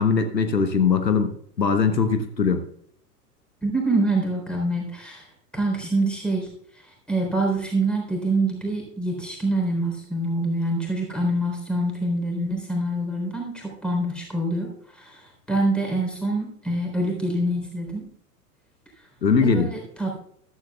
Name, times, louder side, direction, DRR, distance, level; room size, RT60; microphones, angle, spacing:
voice 1, 0.0-2.6 19.2-19.7, left 5 dB, 80° left, 9 dB, 1.1 m, -21 dB
voice 2, 3.6-5.3 5.5-6.5 7.1-18.1 19.4-20.1, right 1 dB, ahead, 0 dB, 3.7 m, -25 dB
14.0 x 12.5 x 2.3 m, 0.66 s
figure-of-eight pair, 95°, 49 cm